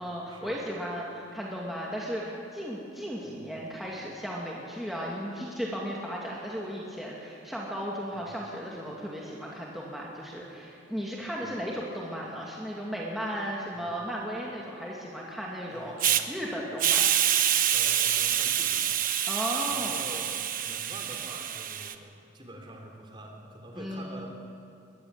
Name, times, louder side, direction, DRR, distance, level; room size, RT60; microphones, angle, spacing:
voice 1, 0.0-17.1 19.3-19.9 23.7-24.2, equal, ahead, -5 dB, 2.5 m, -35 dB
voice 2, 3.2-3.6 8.1-8.4 11.2-11.5 13.7-13.9 15.7-16.4 17.7-19.0 19.7-20.3 20.6-24.3, right 1 dB, 25° right, 1 dB, 3.5 m, -46 dB
Hiss, 16.0-16.2 16.8-21.9, right 10 dB, 45° right, 1.0 m, -26 dB
22.0 x 15.0 x 9.7 m, 2.6 s
head